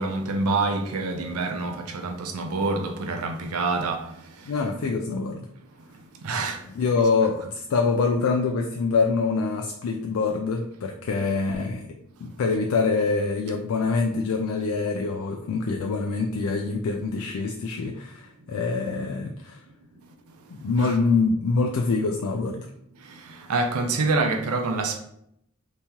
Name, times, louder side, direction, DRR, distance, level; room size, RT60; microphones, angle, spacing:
voice 1, 0.0-4.5 6.2-6.6 20.8-20.9 23.0-25.0, right 3 dB, 85° right, 0.5 m, -27 dB
voice 2, 4.5-5.5 6.7-11.9 12.2-19.6 20.6-22.7, left 4 dB, 75° left, 0.3 m, -25 dB
3.5 x 2.9 x 2.8 m
head